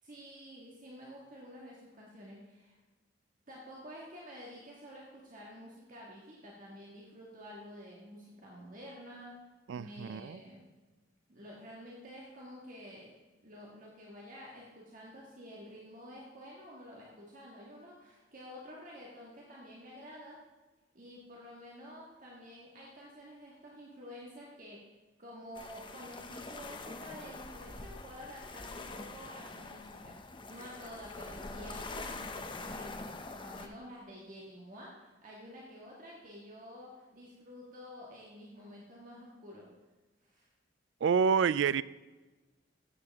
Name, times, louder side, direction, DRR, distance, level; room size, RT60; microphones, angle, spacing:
voice 1, 0.0-2.8 3.5-9.4 9.7-10.6 11.3-13.1 13.4-20.4 20.9-24.8 25.2-30.2 30.5-39.7 40.2-40.5, equal, 45° right, -4 dB, 1.7 m, -50 dB
voice 2, 9.7-10.4 41.0-41.8, right 6 dB, 80° right, 19 dB, 0.3 m, -28 dB
sound 1, 25.5-33.7, left 3 dB, 25° left, 0.7 m, -44 dB
14.0 x 8.3 x 3.6 m, 1.2 s
head